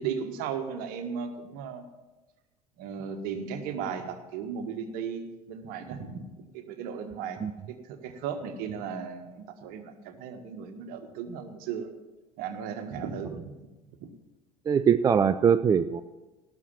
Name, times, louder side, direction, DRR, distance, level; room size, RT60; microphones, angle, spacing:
voice 1, 0.0-1.8 2.8-6.2 6.5-7.4 7.7-11.9 12.4-13.7 14.0-14.1, right 7 dB, 50° right, 7 dB, 1.5 m, -36 dB
voice 2, 14.7-16.0, right 7 dB, 20° right, 12 dB, 0.4 m, -22 dB
17.5 x 6.5 x 7.0 m, 1.1 s
figure-of-eight pair, 70°, 20 cm